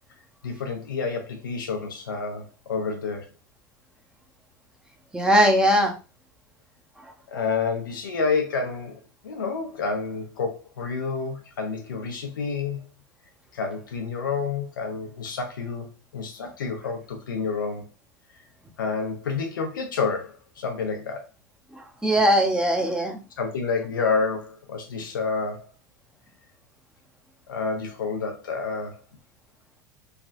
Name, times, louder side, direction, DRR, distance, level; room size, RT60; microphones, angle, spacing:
voice 1, 0.4-3.3 7.3-12.9 13.5-17.9 18.8-21.2 23.4-25.7 27.5-29.0, left 4 dB, 90° left, 0.7 m, -29 dB
voice 2, 5.1-5.9 21.8-23.2, equal, 5° right, 0.7 m, -20 dB
3.3 x 2.3 x 2.5 m
hypercardioid pair, 90°, 11 cm